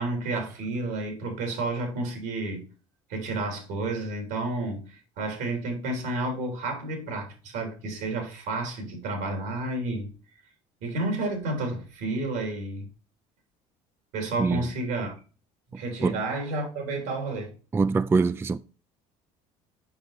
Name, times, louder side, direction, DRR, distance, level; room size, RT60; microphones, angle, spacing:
voice 1, 0.0-2.6 3.1-10.1 10.8-12.9 14.1-15.1 15.7-17.5, right 2 dB, 75° right, 3.2 m, -31 dB
voice 2, 15.7-16.2 17.7-18.6, right 4 dB, 15° right, 0.3 m, -24 dB
6.7 x 5.6 x 4.2 m
supercardioid pair, 75°, 17 cm